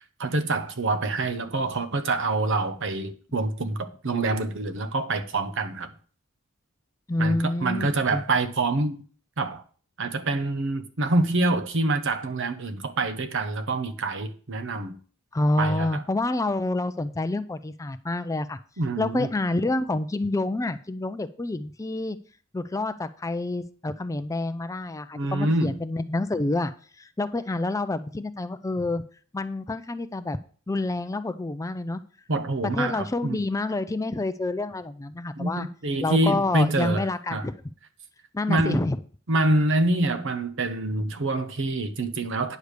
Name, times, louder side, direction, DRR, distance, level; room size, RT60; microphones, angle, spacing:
voice 1, 0.2-5.9 7.2-9.0 9.4-9.6 10.0-15.0 15.6-16.0 18.8-19.3 25.1-25.8 32.3-33.4 35.4-37.5 38.5-38.8 39.3-42.6, right 2 dB, 60° right, 1.0 m, -26 dB
voice 2, 7.1-8.2 15.3-18.6 19.0-22.2 22.5-26.7 27.0-29.0 29.3-30.4 30.7-32.0 32.7-35.7 36.0-37.6 38.3-39.0, left 2 dB, 15° left, 0.4 m, -28 dB
9.4 x 5.0 x 6.6 m
head